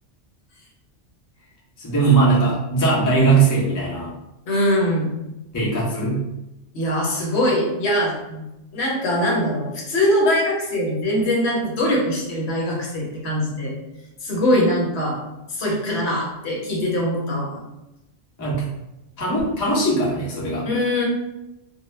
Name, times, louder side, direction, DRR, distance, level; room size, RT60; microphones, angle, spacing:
voice 1, 1.8-4.1 5.5-6.2 18.4-18.6 19.2-20.7, right 3 dB, 25° left, -6 dB, 0.4 m, -19 dB
voice 2, 4.5-5.1 6.7-8.4 8.7-13.7 14.2-15.2 15.5-17.6 20.6-21.1, left 1 dB, 65° left, -2 dB, 0.9 m, -22 dB
2.1 x 2.1 x 3.1 m, 0.95 s
omnidirectional pair, 1.2 m